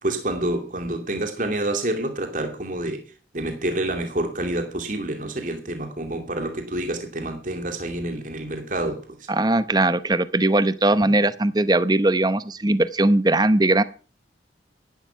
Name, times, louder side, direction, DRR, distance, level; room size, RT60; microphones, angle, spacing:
voice 1, 0.0-3.0 3.3-9.3 11.0-11.1, right 1 dB, 45° right, 2.7 m, -28 dB
voice 2, 9.3-13.8, right 2 dB, 20° right, 0.8 m, -20 dB
16.0 x 12.0 x 5.8 m
head